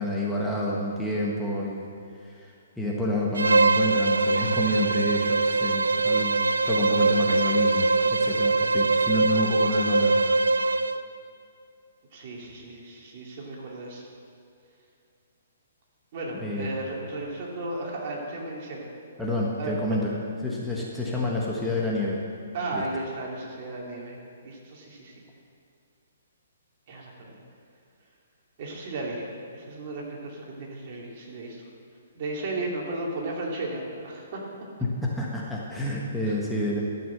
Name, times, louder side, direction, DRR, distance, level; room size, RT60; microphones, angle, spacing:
voice 1, 0.0-1.9 2.2-10.2 16.3-16.9 19.2-22.2 22.7-22.8 34.8-36.8, left 1 dB, 5° left, -5 dB, 1.4 m, -29 dB
Bowed string instrument, 3.3-11.0, right 3 dB, 90° right, 0.4 m, -22 dB
voice 2, 12.1-14.1 16.1-18.9 19.6-20.0 22.5-24.2 24.4-25.1 26.9-27.4 28.6-31.6 32.1-34.4 36.2-36.4, right 2 dB, 45° right, -2 dB, 2.7 m, -35 dB
13.0 x 6.0 x 7.6 m, 2.5 s
hypercardioid pair, 130°, 0 cm